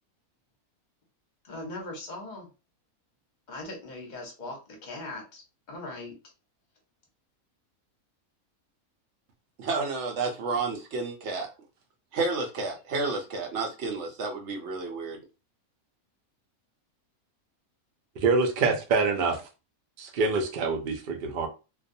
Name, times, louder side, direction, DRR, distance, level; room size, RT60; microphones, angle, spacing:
voice 1, 1.4-2.5 3.5-5.4 5.7-6.1, left 2 dB, 40° left, 0.7 m, -39 dB
voice 2, 9.6-11.5 12.1-15.2, right 3 dB, 65° right, 0.8 m, -31 dB
voice 3, 18.2-19.4 20.0-21.5, right 4 dB, 90° right, 0.4 m, -25 dB
2.4 x 2.2 x 2.6 m
omnidirectional pair, 1.5 m